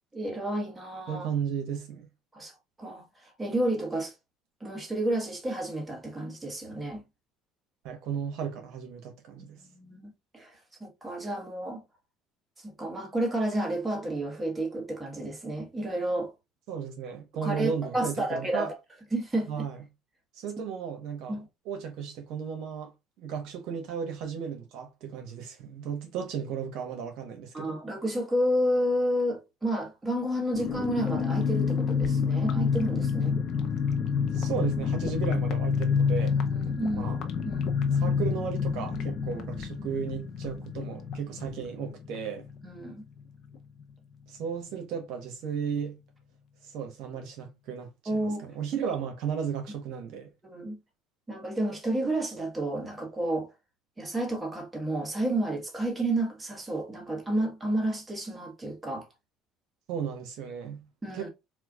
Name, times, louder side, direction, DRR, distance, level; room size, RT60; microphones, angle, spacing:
voice 1, 0.1-1.3 2.3-2.5 2.8-4.1 4.6-7.0 9.4-11.8 12.6-16.3 17.4-18.7 19.1-19.7 21.3-21.5 27.5-33.4 36.2-37.1 37.4-37.7 42.6-43.0 48.1-48.5 48.8-48.9 50.4-50.8 51.3-53.5 54.0-59.1 61.0-61.3, right 1 dB, 15° right, 1.4 m, -31 dB
voice 2, 1.1-2.1 7.8-9.6 16.7-18.7 19.5-19.8 20.3-22.9 23.2-27.8 34.3-36.4 37.0-37.2 37.9-42.4 44.3-46.0 46.6-50.3 59.9-60.8 61.1-61.3, right 7 dB, 70° right, 1.0 m, -35 dB
sound 1, 30.5-42.9 43.2-43.3 43.5-43.8, left 6 dB, 55° left, 0.8 m, -28 dB
4.3 x 2.4 x 2.3 m
supercardioid pair, 100°, 0 cm